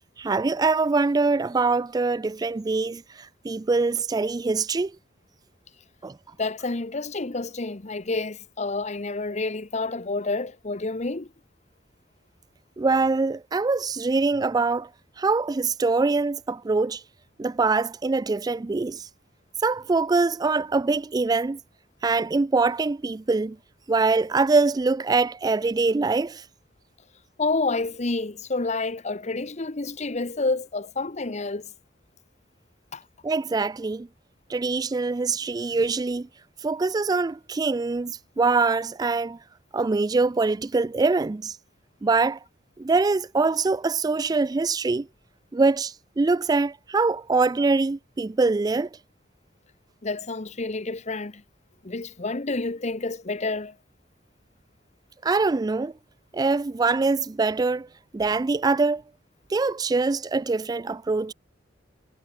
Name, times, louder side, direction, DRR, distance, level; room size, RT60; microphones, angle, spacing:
voice 1, 0.2-4.9 6.0-6.1 12.8-14.9 15.2-17.0 17.4-19.1 19.6-21.6 22.0-23.6 23.9-26.4 33.2-34.1 34.5-36.3 36.6-39.4 39.7-41.6 42.0-42.4 42.8-45.1 45.5-48.9 55.2-55.9 56.3-57.9 58.1-59.0 59.5-61.3, right 3 dB, 20° right, 0.3 m, -23 dB
voice 2, 6.4-11.3 27.4-31.7 32.9-33.0 50.0-51.4 51.8-53.7, left 3 dB, 35° left, 1.0 m, -29 dB
head